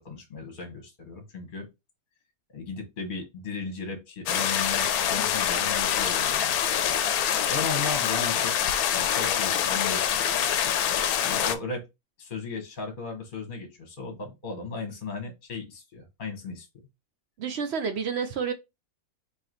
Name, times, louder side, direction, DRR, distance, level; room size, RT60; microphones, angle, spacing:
voice 1, 0.0-1.7 2.5-6.6 7.5-8.5 8.9-10.3 11.2-11.8 12.2-16.7, left 4 dB, 40° left, 1.0 m, -36 dB
sound 1, 4.3-11.5, left 9 dB, 80° left, 1.0 m, -25 dB
voice 2, 17.4-18.5, right 6 dB, 60° right, 0.7 m, -29 dB
3.0 x 3.0 x 3.8 m
omnidirectional pair, 1.6 m